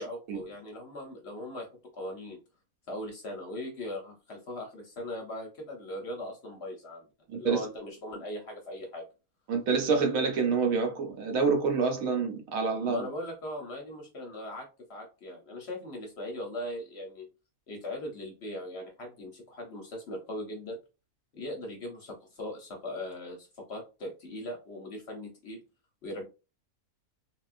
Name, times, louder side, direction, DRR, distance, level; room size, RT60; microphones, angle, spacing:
voice 1, 0.0-2.4 2.9-7.1 7.3-9.1 12.8-17.2 17.7-20.8 21.3-25.6 26.0-26.3, left 1 dB, 55° left, 0.8 m, -39 dB
voice 2, 7.3-7.6 9.5-13.1, right 5 dB, 70° right, 1.1 m, -27 dB
3.5 x 2.3 x 2.4 m
omnidirectional pair, 1.6 m